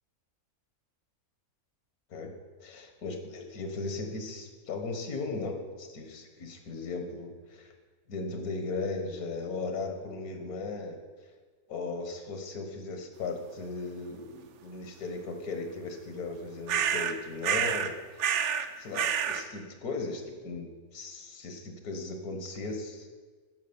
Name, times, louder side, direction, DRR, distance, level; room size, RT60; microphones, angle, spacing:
voice 1, 2.6-7.7 8.1-11.0 11.7-18.3 18.8-23.1, left 3 dB, 80° left, 5 dB, 1.7 m, -37 dB
sound 1, 16.7-17.2 17.4-17.9 18.2-18.7 18.9-19.4, right 8 dB, 65° right, 0.8 m, -28 dB
9.3 x 6.1 x 6.9 m, 1.4 s
omnidirectional pair, 1.5 m